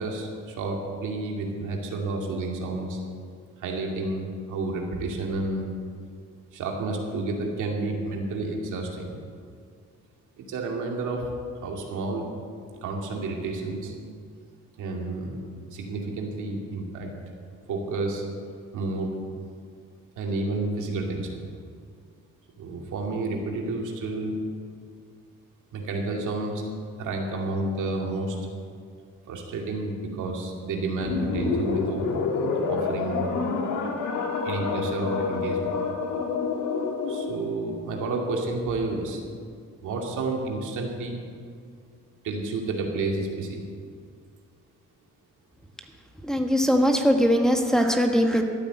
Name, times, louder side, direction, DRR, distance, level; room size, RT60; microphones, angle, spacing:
voice 1, 0.0-3.0 3.6-5.7 6.5-9.2 10.4-11.3 11.6-12.3 12.8-13.9 14.8-17.1 17.7-18.2 18.7-19.2 20.2-21.5 22.6-24.4 25.7-26.6 27.0-28.4 29.3-32.1 32.7-33.3 34.4-35.8 37.1-39.2 39.8-41.2 42.2-43.7, right 2 dB, 80° right, 0 dB, 2.5 m, -30 dB
sound 1, 31.0-37.4, left 4 dB, 80° left, 2.0 m, -28 dB
voice 2, 46.3-48.4, equal, ahead, 3 dB, 1.4 m, -21 dB
13.5 x 8.7 x 7.7 m, 2.1 s
cardioid pair, 90°, 30 cm